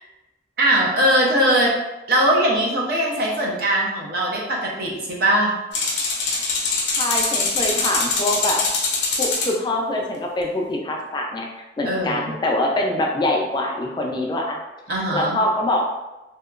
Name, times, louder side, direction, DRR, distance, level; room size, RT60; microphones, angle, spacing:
voice 1, 0.6-1.8 2.1-5.6 11.8-12.3 14.9-15.4, right 1 dB, 60° right, -2 dB, 0.6 m, -20 dB
sound 1, 5.7-9.5, left 3 dB, 75° left, 0.6 m, -23 dB
voice 2, 7.0-8.6 9.2-11.5 11.8-14.6 14.9-15.8, left 1 dB, 25° left, 0 dB, 0.3 m, -24 dB
2.8 x 2.2 x 2.3 m, 1.0 s
head